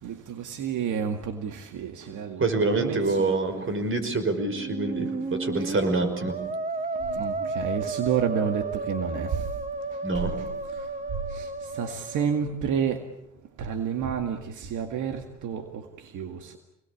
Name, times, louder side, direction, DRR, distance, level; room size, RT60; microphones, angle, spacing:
voice 1, 0.0-3.6 5.6-5.8 7.0-9.5 9.9-10.3 10.7-10.9 11.3-13.0 13.6-16.6, right 7 dB, 80° right, 2.1 m, -30 dB
voice 2, 2.4-6.3 10.0-10.3, right 3 dB, 45° right, 5.4 m, -26 dB
Musical instrument, 4.5-12.5, right 3 dB, 25° right, 1.6 m, -33 dB
27.5 x 21.0 x 8.6 m
cardioid pair, 90°, 30 cm